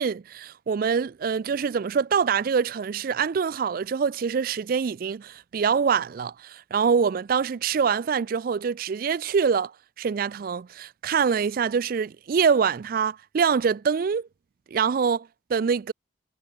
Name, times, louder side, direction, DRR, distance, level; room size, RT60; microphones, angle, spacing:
voice 1, 0.0-9.7 10.0-14.3 14.7-15.9, right 6 dB, 50° right, 0.3 m, -25 dB
head